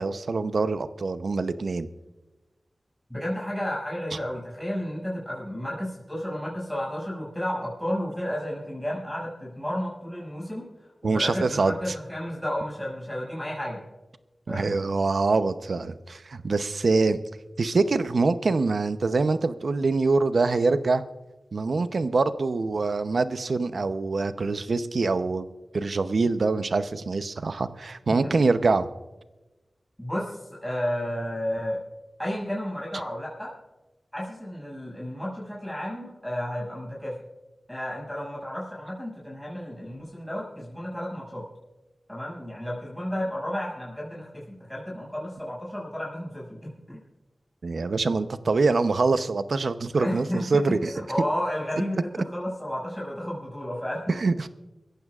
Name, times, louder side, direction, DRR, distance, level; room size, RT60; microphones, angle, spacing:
voice 1, 0.0-1.9 11.0-11.7 14.5-17.2 17.6-21.0 21.5-28.9 47.6-50.9 54.2-54.5, right 3 dB, 75° right, 11 dB, 0.7 m, -24 dB
voice 2, 3.1-13.8 14.5-14.8 28.1-28.3 30.0-31.8 32.2-33.5 34.1-37.2 37.7-41.4 42.1-47.0 50.0-54.1, equal, 5° left, -5 dB, 6.4 m, -32 dB
24.5 x 14.5 x 2.4 m, 1.1 s
cardioid pair, 45°, 0 cm